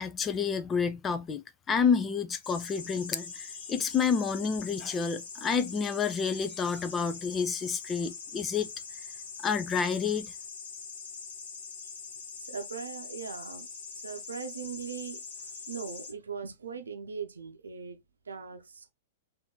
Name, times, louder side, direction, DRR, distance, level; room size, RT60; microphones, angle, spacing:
voice 1, 0.0-8.7 9.4-10.3, left 6 dB, 20° left, 0.4 m, -29 dB
sound 1, 2.4-16.1, left 5 dB, 55° left, 1.3 m, -43 dB
voice 2, 12.4-13.7 13.9-18.9, right 6 dB, 70° right, 0.6 m, -40 dB
3.7 x 2.6 x 3.7 m
figure-of-eight pair, 100°, 0 cm